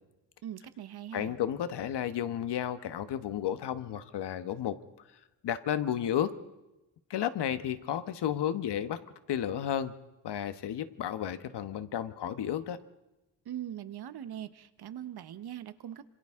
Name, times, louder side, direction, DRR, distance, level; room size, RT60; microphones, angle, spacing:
voice 1, 0.4-1.4 13.4-16.1, right 11 dB, 60° right, 13 dB, 1.1 m, -41 dB
voice 2, 1.1-4.8 5.4-6.3 7.1-9.0 9.3-9.9 10.2-12.8, left 10 dB, 65° left, 12 dB, 1.2 m, -32 dB
26.5 x 26.5 x 3.7 m, 0.98 s
wide cardioid pair, 165°, 44 cm